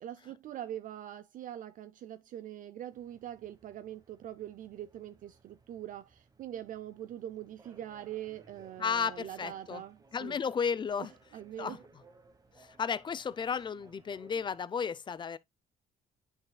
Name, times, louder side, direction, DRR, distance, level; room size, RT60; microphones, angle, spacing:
voice 1, 0.0-10.4 11.3-11.8, right 11 dB, 50° right, 0.5 m, -43 dB
sound 1, 2.9-14.6, right 3 dB, 20° right, 1.2 m, -62 dB
voice 2, 8.8-9.8 10.1-11.1 11.6-11.8 12.6-15.4, left 6 dB, 25° left, 0.5 m, -33 dB
9.4 x 5.5 x 2.2 m
cardioid pair, 110°, 17 cm